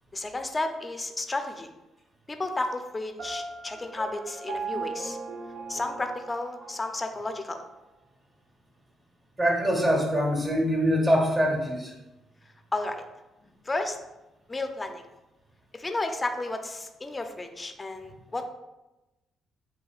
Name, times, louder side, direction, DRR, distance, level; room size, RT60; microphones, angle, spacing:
voice 1, 0.1-1.7 2.3-5.2 5.7-7.6 12.7-13.0 13.7-14.0 14.5-15.0 15.7-18.5, left 2 dB, 20° left, 6 dB, 0.5 m, -32 dB
Piano, 3.2-7.1, right 4 dB, 65° right, 0.7 m, -38 dB
voice 2, 9.4-11.9, equal, 30° right, -1 dB, 1.2 m, -24 dB
7.8 x 2.8 x 2.4 m, 1.0 s
cardioid pair, 90°, 0 cm